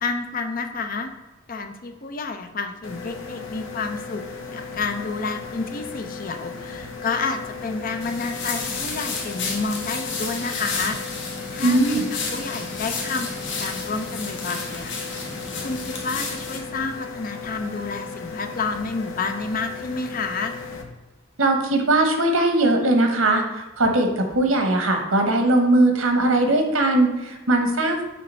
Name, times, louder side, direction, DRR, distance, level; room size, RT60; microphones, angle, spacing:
voice 1, 0.0-1.1 1.5-4.2 4.5-12.0 12.3-13.3 13.6-15.3 15.6-20.5, left 4 dB, 45° left, 6 dB, 0.6 m, -30 dB
sound 1, 2.8-20.8, left 4 dB, 80° left, 0.9 m, -36 dB
sound 2, 8.0-16.6, left 4 dB, 60° left, 1.3 m, -32 dB
voice 2, 11.6-12.0 21.4-28.0, right 2 dB, 85° right, 4 dB, 1.1 m, -20 dB
6.5 x 3.3 x 5.5 m, 1.1 s
head